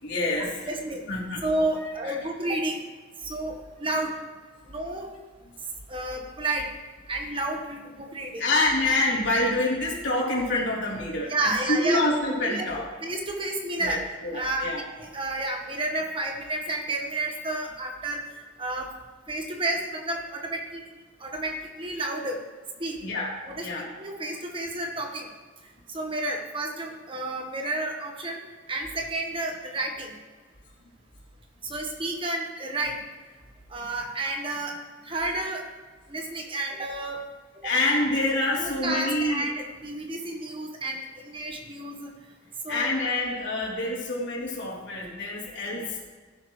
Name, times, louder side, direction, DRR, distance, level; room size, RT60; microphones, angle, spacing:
voice 1, 0.0-0.5 1.1-1.4 8.4-12.9 13.8-14.8 23.0-23.3 23.6-23.9 37.6-39.4 42.7-46.1, left 2 dB, 70° left, -4 dB, 3.5 m, -26 dB
voice 2, 0.7-2.8 3.2-4.2 4.7-5.1 5.9-6.7 7.1-8.4 11.3-12.0 12.4-12.6 13.0-14.0 14.3-18.2 18.6-18.9 19.3-20.8 21.2-22.4 22.8-23.0 23.5-23.7 24.0-25.3 25.9-28.4 28.7-30.1 31.6-33.0 33.7-34.8 35.0-35.6 36.1-37.2 37.5-37.7 38.6-42.1 42.6-42.9, right 2 dB, 30° right, 2 dB, 1.3 m, -31 dB
16.5 x 11.0 x 3.2 m, 1.5 s
head